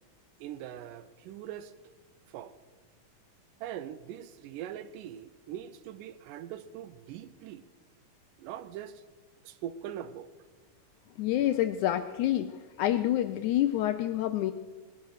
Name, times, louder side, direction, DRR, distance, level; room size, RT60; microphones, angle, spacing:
voice 1, 0.4-1.7 2.3-2.6 3.6-7.7 8.4-9.0 9.4-10.3, right 10 dB, 80° right, 2.1 m, -42 dB
voice 2, 11.2-14.5, left 13 dB, 80° left, 1.7 m, -28 dB
20.0 x 10.5 x 6.5 m
omnidirectional pair, 4.0 m